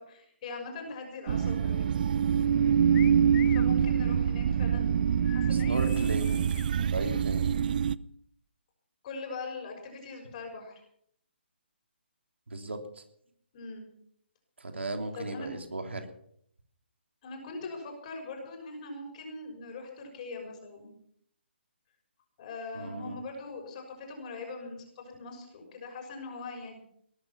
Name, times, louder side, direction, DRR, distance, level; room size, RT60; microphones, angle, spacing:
voice 1, 0.0-1.9 3.1-6.3 9.0-10.7 13.5-13.9 15.1-15.5 17.2-20.9 22.4-26.7, left 3 dB, 40° left, 2 dB, 6.3 m, -41 dB
sound 1, 1.3-8.0, right 8 dB, 45° right, 0.6 m, -25 dB
voice 2, 2.5-2.8 5.4-6.4 6.7-7.5 12.5-13.0 14.6-16.1 22.7-23.2, right 2 dB, 80° right, 5 dB, 3.3 m, -36 dB
sound 2, 2.9-3.7 5.2-6.7, left 14 dB, 15° left, 0.7 m, -45 dB
19.5 x 12.5 x 5.9 m, 0.69 s
figure-of-eight pair, 145°, 6 cm